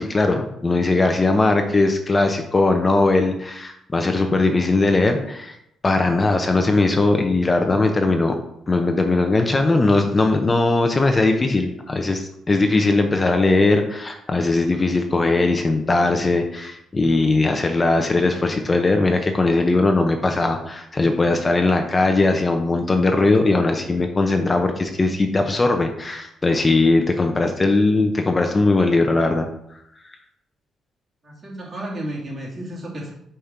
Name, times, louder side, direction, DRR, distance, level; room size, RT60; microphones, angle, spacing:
voice 1, 0.0-5.6 5.8-8.4 8.7-29.5, left 2 dB, 25° left, 4 dB, 0.7 m, -19 dB
voice 2, 31.2-33.1, right 1 dB, 40° right, -3 dB, 2.4 m, -32 dB
5.1 x 4.4 x 5.6 m, 0.78 s
cardioid pair, 90°, 0 cm